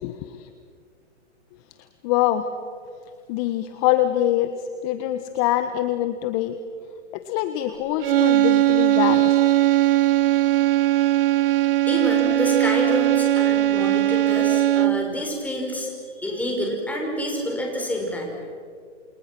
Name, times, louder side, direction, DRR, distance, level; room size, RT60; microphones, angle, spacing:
voice 1, 0.0-0.4 2.0-2.4 3.3-4.5 4.8-6.5 7.3-9.4 11.6-11.7, left 13 dB, 30° left, 9 dB, 1.3 m, -24 dB
sound 1, 8.0-15.2, right 14 dB, 50° right, 0.8 m, -19 dB
voice 2, 11.9-18.4, equal, 5° left, 0 dB, 5.8 m, -28 dB
28.5 x 28.5 x 6.2 m, 2.2 s
hypercardioid pair, 135°, 37 cm